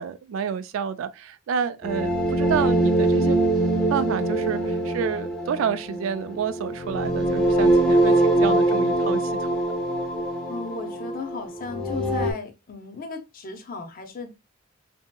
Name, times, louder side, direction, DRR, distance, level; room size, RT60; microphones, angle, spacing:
voice 1, 0.0-9.6, right 7 dB, 75° right, 0.3 m, -29 dB
sound 1, 1.8-12.3, right 2 dB, ahead, 0.6 m, -23 dB
voice 2, 10.5-14.3, left 4 dB, 45° left, 0.5 m, -36 dB
2.8 x 2.7 x 2.2 m
head